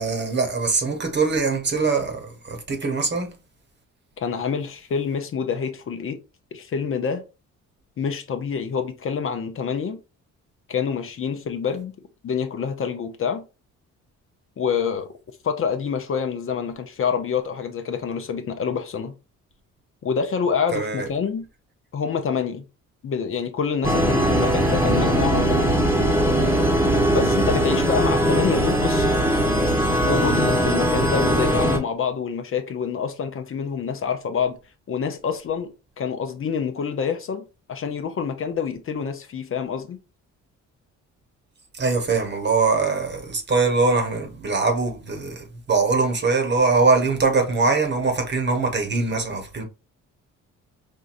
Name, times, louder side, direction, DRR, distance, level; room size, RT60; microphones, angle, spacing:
voice 1, 0.0-3.3 20.7-21.1 41.8-49.6, right 4 dB, 35° right, 1.0 m, -22 dB
voice 2, 4.2-6.2 6.5-7.2 8.0-10.0 10.7-11.9 12.2-13.4 14.6-15.1 15.4-19.1 20.0-21.5 21.9-22.7 23.0-25.8 27.1-29.1 30.0-34.6 34.9-35.7 36.0-40.0, left 6 dB, 45° left, 0.6 m, -27 dB
sound 1, 23.8-31.8, right 1 dB, 10° right, 1.0 m, -20 dB
4.4 x 2.6 x 2.5 m
cardioid pair, 90°, 30 cm